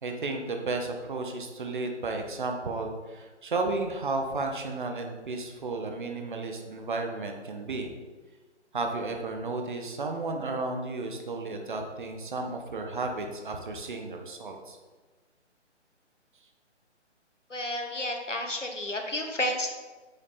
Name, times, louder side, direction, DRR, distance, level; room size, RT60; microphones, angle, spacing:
voice 1, 0.0-7.9 8.7-14.8, right 3 dB, 45° right, 4 dB, 1.3 m, -33 dB
voice 2, 17.5-19.7, left 1 dB, 85° left, 3 dB, 1.7 m, -31 dB
8.8 x 7.3 x 4.2 m, 1.3 s
figure-of-eight pair, 145°, 36 cm